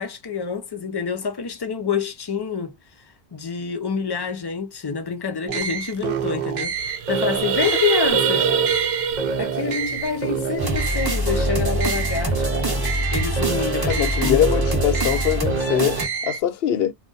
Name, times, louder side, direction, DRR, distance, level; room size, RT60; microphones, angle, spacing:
voice 1, 0.0-2.8 3.3-8.5 9.4-14.4, left 6 dB, 30° left, 0.5 m, -27 dB
sound 1, 5.5-16.4, right 6 dB, 55° right, 0.6 m, -27 dB
sound 2, 5.7-5.8 6.1-6.3 6.6-11.0, right 6 dB, 85° right, 0.8 m, -25 dB
sound 3, 10.6-16.1, right 1 dB, 25° right, 0.8 m, -24 dB
voice 2, 13.9-16.9, left 10 dB, 75° left, 0.8 m, -22 dB
2.5 x 2.2 x 3.8 m
omnidirectional pair, 1.0 m